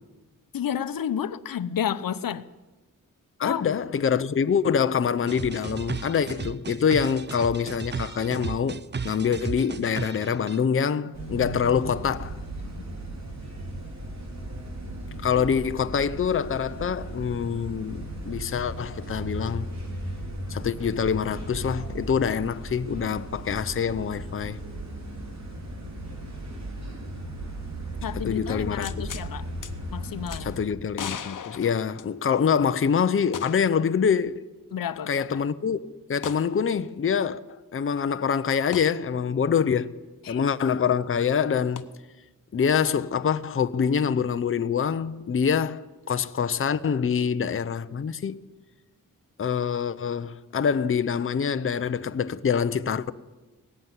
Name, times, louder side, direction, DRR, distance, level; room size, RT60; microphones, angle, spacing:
voice 1, 0.5-2.5 3.4-3.8 15.3-15.5 28.0-29.5 29.9-30.5 34.7-35.4 40.2-40.4, left 9 dB, 90° left, 0.8 m, -31 dB
voice 2, 3.4-12.4 15.2-19.7 20.5-24.6 28.2-29.1 30.4-34.5 35.1-37.4 37.7-40.0 40.3-41.9 42.5-48.4 49.4-53.1, left 7 dB, 40° left, 0.6 m, -25 dB
sound 1, 5.3-10.6, right 5 dB, 30° right, 0.5 m, -35 dB
sound 2, 11.1-30.6, right 1 dB, 55° right, 4.6 m, -36 dB
sound 3, 28.8-29.3 29.6-29.7 30.3-30.4 30.9-32.5 33.3-33.8 34.1-34.2 36.2-36.5 38.7-38.9 41.8-41.9, left 8 dB, 65° left, 1.0 m, -37 dB
18.0 x 15.0 x 9.6 m
wide cardioid pair, 140°, 33 cm